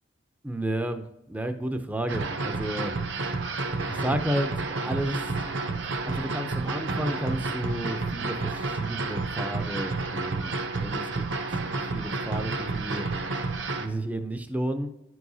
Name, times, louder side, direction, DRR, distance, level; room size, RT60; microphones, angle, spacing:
voice 1, 0.4-2.9 3.9-5.3 6.0-11.3 11.9-13.1 13.8-14.9, right 1 dB, 10° right, 7 dB, 0.4 m, -32 dB
sound 1, 2.1-13.9, right 3 dB, 65° right, 0.7 m, -30 dB
10.0 x 4.7 x 2.7 m, 0.86 s
head